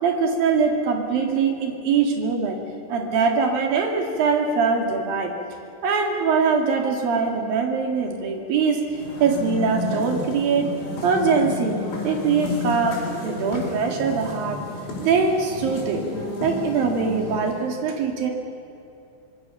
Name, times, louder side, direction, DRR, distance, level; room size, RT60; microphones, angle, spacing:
voice 1, 0.0-2.6 2.9-5.3 5.8-8.8 9.2-10.7 11.0-11.8 12.0-14.6 15.0-16.1 16.4-18.3, right 5 dB, 55° right, 3 dB, 3.6 m, -22 dB
sound 1, 8.8-17.7, left 3 dB, 70° left, 7.0 m, -32 dB
25.0 x 21.5 x 6.9 m, 2.7 s
omnidirectional pair, 5.5 m